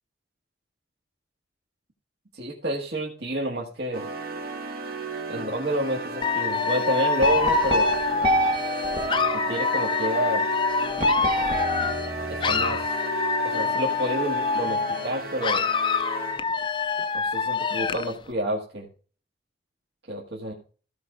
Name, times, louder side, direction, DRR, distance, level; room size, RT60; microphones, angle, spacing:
voice 1, 2.3-4.1 5.3-7.9 9.3-10.4 12.3-12.9 13.4-15.7 17.1-18.9 20.1-20.5, right 1 dB, 75° right, -2 dB, 1.9 m, -29 dB
sound 1, 3.9-16.6, right 2 dB, 55° right, 2.0 m, -34 dB
Dog / Alarm, 6.2-12.1 12.4-15.1 15.4-18.1, left 5 dB, 25° left, 0.4 m, -26 dB
sound 2, 7.2-9.9 11.0-12.7, equal, 30° right, 1.4 m, -26 dB
15.5 x 5.3 x 4.9 m, 0.39 s
head